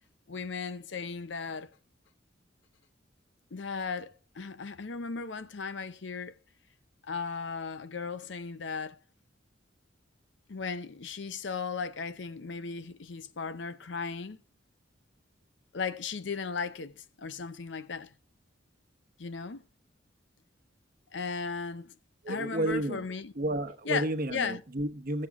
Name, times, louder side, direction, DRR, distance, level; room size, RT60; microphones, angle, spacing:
voice 1, 0.3-1.7 3.5-6.4 7.1-9.0 10.5-14.4 15.7-18.1 19.2-19.6 21.1-21.9 22.3-23.3 23.8-24.6, left 5 dB, 70° left, 0.7 m, -36 dB
voice 2, 22.2-23.0 23.3-25.3, right 1 dB, 50° right, 1.1 m, -31 dB
15.0 x 7.6 x 3.6 m
head